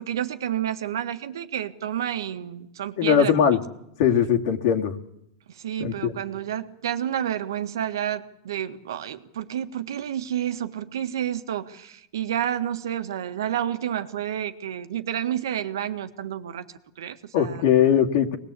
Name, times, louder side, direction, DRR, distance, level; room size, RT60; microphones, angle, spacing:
voice 1, 0.0-3.3 5.5-16.6 17.0-17.6, right 10 dB, 90° right, 9 dB, 1.6 m, -30 dB
voice 2, 3.0-3.6 4.0-4.9 5.8-6.1 17.3-18.4, left 8 dB, 65° left, 5 dB, 2.4 m, -20 dB
24.5 x 19.5 x 8.4 m, 0.80 s
supercardioid pair, 135°, 2 cm